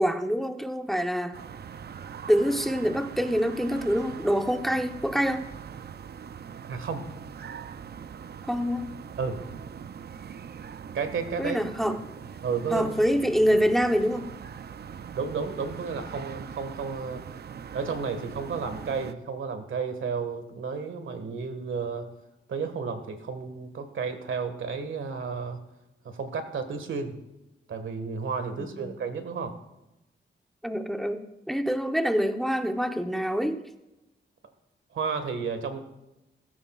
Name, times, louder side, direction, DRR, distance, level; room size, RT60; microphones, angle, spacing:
voice 1, 0.0-1.4 2.3-5.5 8.5-8.9 11.4-12.0 12.7-14.3 28.5-28.9 30.6-33.6, equal, ahead, 6 dB, 0.9 m, -26 dB
sound 1, 1.3-19.1, right 7 dB, 55° right, 0.6 m, -42 dB
voice 2, 6.7-7.0 9.2-9.4 10.9-11.6 11.9-12.0 12.4-12.9 15.1-17.2 17.7-22.1 22.5-25.6 26.0-27.1 27.7-29.5 34.9-35.8, right 5 dB, 80° right, 8 dB, 1.7 m, -32 dB
17.5 x 15.0 x 2.4 m, 0.96 s
wide cardioid pair, 105°, 20 cm